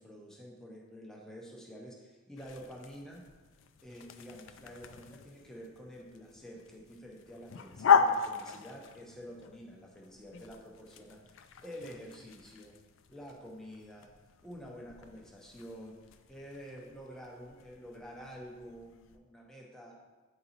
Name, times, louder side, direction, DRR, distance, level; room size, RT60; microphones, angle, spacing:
voice 1, 0.0-3.2 3.8-12.7 13.1-14.1 14.4-16.0 16.3-20.0, equal, 5° left, -3 dB, 0.8 m, -48 dB
sound 1, 2.4-19.2, left 6 dB, 65° left, 0.4 m, -36 dB
9.2 x 3.9 x 2.8 m, 1.3 s
head